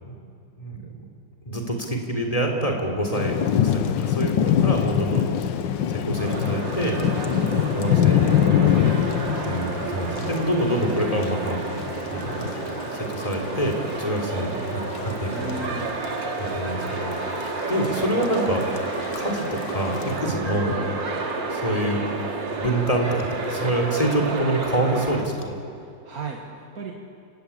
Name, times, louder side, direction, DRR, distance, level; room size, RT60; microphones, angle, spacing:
voice 1, 0.6-1.0 1.5-5.3 5.9-7.0 7.5-8.4 9.4-11.6 12.1-12.5 12.9-15.7 16.4-18.6 19.1-20.8 21.5-22.0 22.5-25.6, right 1 dB, 20° left, 2 dB, 3.8 m, -26 dB
Thunder / Rain, 3.1-20.2, left 9 dB, 80° left, 1.7 m, -26 dB
sound 1, 6.2-25.2, right 3 dB, 80° right, 2.9 m, -31 dB
voice 2, 7.0-7.5 14.0-14.7 15.3-16.0 20.1-20.3 20.8-21.0 25.8-26.9, right 3 dB, 50° right, 1 dB, 2.2 m, -37 dB
30.0 x 17.5 x 8.7 m, 2.7 s
omnidirectional pair, 2.0 m